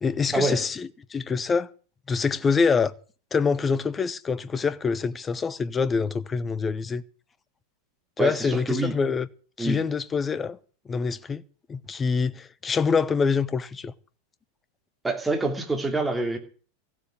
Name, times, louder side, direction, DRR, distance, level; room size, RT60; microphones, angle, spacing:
voice 1, 0.0-1.7 2.1-2.9 3.3-7.0 8.2-9.3 9.6-10.6 10.9-11.4 11.7-13.9, left 5 dB, 20° left, 0.8 m, -25 dB
voice 2, 8.2-8.9 9.6-9.8 15.0-16.4, right 2 dB, 10° right, 3.0 m, -26 dB
15.0 x 7.4 x 9.4 m
figure-of-eight pair, 90°, 0 cm